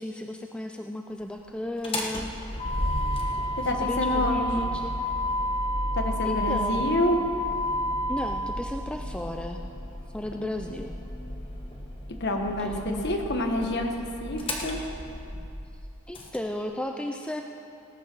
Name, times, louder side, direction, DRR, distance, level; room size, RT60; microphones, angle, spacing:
voice 1, 0.0-2.3 3.8-4.9 6.2-7.0 8.1-9.6 10.1-10.9 12.6-13.0 16.1-17.4, left 1 dB, 5° left, 3 dB, 0.4 m, -34 dB
Motor vehicle (road), 1.7-16.4, left 1 dB, 25° left, 1.2 m, -31 dB
voice 2, 3.6-4.7 6.0-7.2 12.2-13.9 14.2-14.8, left 1 dB, 50° left, 3 dB, 1.3 m, -27 dB
17.5 x 8.7 x 6.1 m, 2.7 s
head